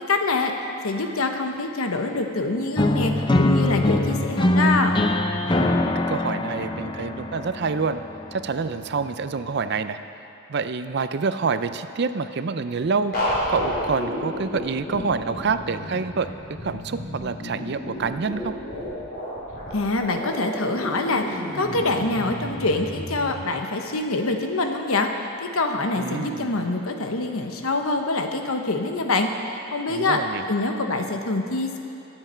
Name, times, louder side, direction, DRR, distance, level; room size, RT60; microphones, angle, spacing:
voice 1, 0.1-0.5 0.8-4.9 19.7-25.1 25.4-29.3 29.7-30.2 30.5-31.8, left 2 dB, 85° left, 4 dB, 1.1 m, -25 dB
sound 1, 2.8-8.7, left 1 dB, 20° left, 0.5 m, -23 dB
voice 2, 5.4-8.0 8.3-10.0 10.5-16.3 16.6-18.5 26.0-26.6 29.9-30.5, right 4 dB, 50° right, 11 dB, 0.5 m, -27 dB
sound 2, 13.1-23.3, equal, 45° left, 3.7 m, -31 dB
22.5 x 7.9 x 4.5 m, 3.0 s
head